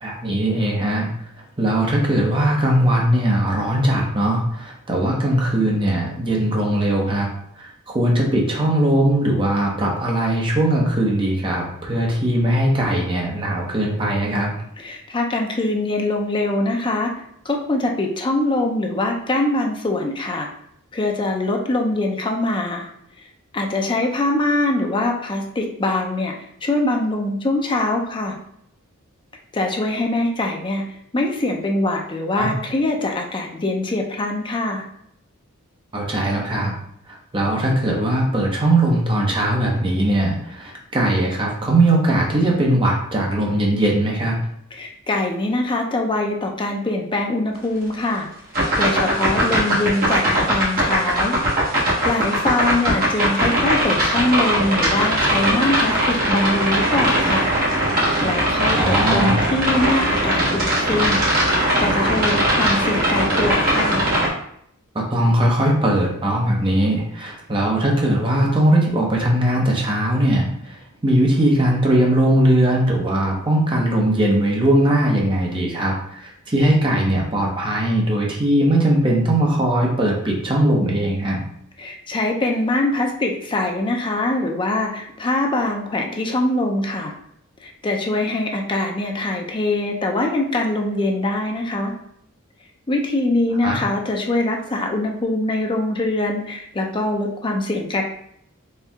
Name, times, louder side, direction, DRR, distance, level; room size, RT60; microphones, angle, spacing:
voice 1, 0.0-1.1 1.6-7.3 7.6-14.5 32.3-32.5 35.9-36.7 37.1-44.4 58.7-59.5 64.9-81.4 93.6-93.8, right 1 dB, 25° right, -2 dB, 0.8 m, -20 dB
voice 2, 14.8-17.1 17.4-20.5 20.9-22.9 23.5-26.3 26.6-28.4 29.5-30.8 31.1-34.8 44.7-48.3 48.8-51.4 51.8-57.5 58.2-64.1 81.8-87.1 87.6-91.9 92.9-98.0, left 2 dB, 20° left, 2 dB, 0.5 m, -23 dB
sound 1, 48.5-64.3, right 1 dB, 45° right, 1.3 m, -20 dB
4.4 x 2.4 x 3.5 m, 0.70 s
head